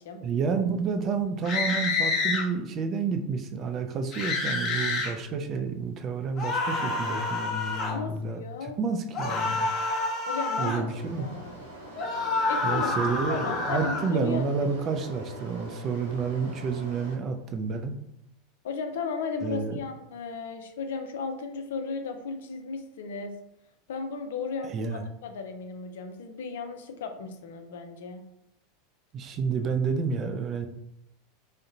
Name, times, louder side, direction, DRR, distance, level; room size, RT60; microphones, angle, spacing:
voice 1, 0.2-9.7 10.6-11.3 12.6-18.0 19.4-19.8 24.6-25.0 29.1-30.7, right 5 dB, 35° right, 7 dB, 0.4 m, -30 dB
sound 1, 1.4-2.4 4.1-5.1 6.4-8.0 9.1-10.8 12.0-14.1, left 3 dB, 35° left, 0.7 m, -28 dB
voice 2, 7.9-8.8 10.3-11.5 12.5-14.7 18.6-23.3 23.9-28.2, left 4 dB, 65° left, 6 dB, 0.4 m, -35 dB
sound 2, 10.9-17.1, right 1 dB, 85° right, 0.9 m, -43 dB
3.6 x 2.1 x 2.6 m, 0.80 s
figure-of-eight pair, 80°, 0 cm